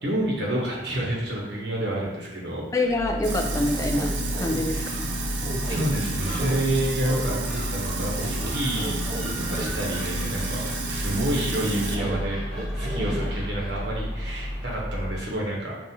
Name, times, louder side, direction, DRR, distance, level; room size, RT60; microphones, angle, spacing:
voice 1, 0.0-2.8 4.7-4.8 5.6-7.4 7.7-9.0 9.4-12.4 12.7-15.8, right 1 dB, 70° right, -3 dB, 0.9 m, -29 dB
voice 2, 2.7-5.1, left 2 dB, 20° left, 3 dB, 0.3 m, -26 dB
Gull seagull, 2.8-15.3, equal, ahead, 1.0 m, -32 dB
Sink (filling or washing), 3.2-12.0, right 3 dB, 85° right, 0.5 m, -32 dB
sound 1, 3.8-4.6 5.4-5.8 6.2-6.6 7.1-7.2 7.5-7.6 8.2-9.7 11.9-12.2 12.5-13.3, right 1 dB, 40° right, 0.5 m, -34 dB
5.3 x 2.4 x 2.8 m, 1.2 s
head